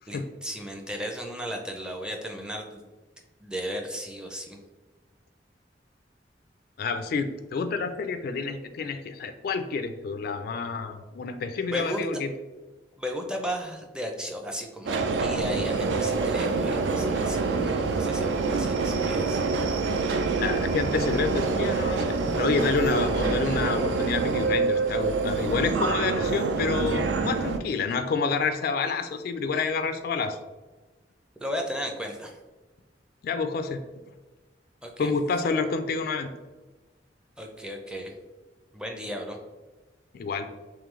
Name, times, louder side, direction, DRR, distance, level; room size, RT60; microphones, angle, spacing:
voice 1, 0.1-2.8 3.4-4.6 11.7-12.0 13.0-19.4 31.4-32.4 34.8-35.1 37.4-38.1 38.7-39.4, equal, 5° right, 2 dB, 0.4 m, -35 dB
voice 2, 6.8-12.3 20.4-30.4 33.2-33.8 35.0-36.3 40.1-40.5, left 4 dB, 55° left, 8 dB, 0.3 m, -28 dB
Subway metro underground, 14.9-27.6, right 4 dB, 80° right, 0.4 m, -26 dB
3.7 x 3.1 x 3.1 m, 1.2 s
head